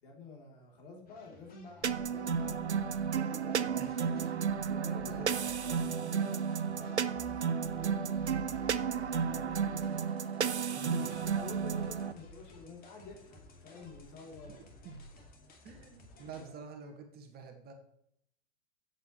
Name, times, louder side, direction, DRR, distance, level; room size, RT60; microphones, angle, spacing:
voice 1, 0.0-3.7 4.6-10.0 10.7-14.7 16.3-16.5, left 4 dB, 50° left, 0 dB, 3.4 m, -50 dB
sound 1, 1.1-16.5, left 1 dB, 25° left, 2.2 m, -53 dB
sound 2, 1.8-12.1, right 7 dB, 85° right, 0.6 m, -33 dB
voice 2, 3.4-4.3 5.1-5.3 10.8-11.2 14.8-15.1 15.6-17.7, right 4 dB, 30° right, 4 dB, 1.8 m, -47 dB
12.5 x 8.2 x 3.2 m, 0.72 s
figure-of-eight pair, 95°, 33 cm